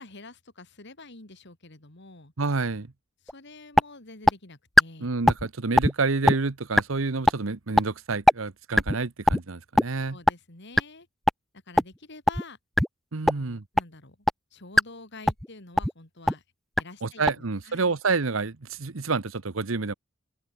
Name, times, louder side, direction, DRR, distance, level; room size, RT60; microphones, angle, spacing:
voice 1, 0.0-2.3 3.2-5.1 10.1-11.1 11.7-12.6 13.3-16.4 16.8-18.0, left 2 dB, 60° left, 3.1 m, -47 dB
voice 2, 2.4-2.9 5.0-10.2 13.1-13.6 17.0-19.9, right 4 dB, 75° right, 1.0 m, -28 dB
sound 1, 3.3-3.4 3.8-3.9 4.3-4.4 4.8-4.9 5.3-5.5 5.8-5.9 6.3-6.4 6.8-6.9 7.3-7.4 7.8-7.9 8.3-8.4 8.8-9.0 9.3-9.4 9.8-9.9 10.3-10.4 10.8-10.9 11.3-11.4 11.8-11.9 12.3-12.4 12.8-12.9 13.3-13.4 13.8-13.9 14.3-14.4 14.8-14.9 15.3-15.5 15.8-15.9 16.3-16.4 16.8-16.9 17.3-17.4, equal, ahead, 0.3 m, -18 dB
open air
head